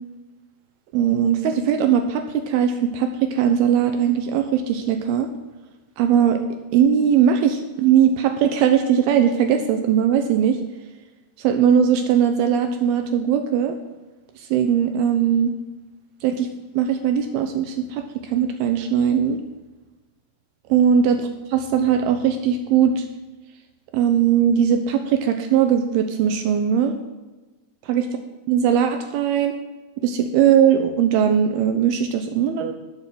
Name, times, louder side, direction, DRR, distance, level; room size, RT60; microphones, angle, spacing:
voice 1, 0.9-5.3 6.0-6.4 6.7-10.6 11.4-13.7 14.5-15.5 16.2-16.5 16.8-18.0 18.3-19.4 20.7-21.2 21.5-23.0 23.9-26.9 27.9-28.0 28.5-29.6 30.0-32.7, right 8 dB, 80° right, 6 dB, 2.4 m, -19 dB
11.0 x 6.8 x 6.8 m, 1.2 s
omnidirectional pair, 5.0 m